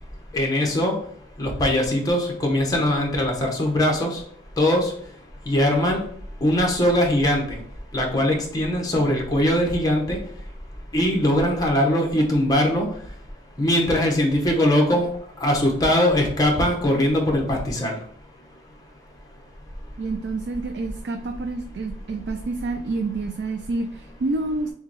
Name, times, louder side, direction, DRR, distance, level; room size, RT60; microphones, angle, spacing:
voice 1, 0.3-0.9 1.4-4.2 4.6-4.9 5.5-6.0 6.4-7.6 7.9-10.2 10.9-12.9 13.6-15.1 15.4-18.0, left 1 dB, 20° left, 1 dB, 0.9 m, -21 dB
voice 2, 20.0-24.7, right 3 dB, 60° right, 6 dB, 0.4 m, -28 dB
6.6 x 2.2 x 3.0 m, 0.64 s
head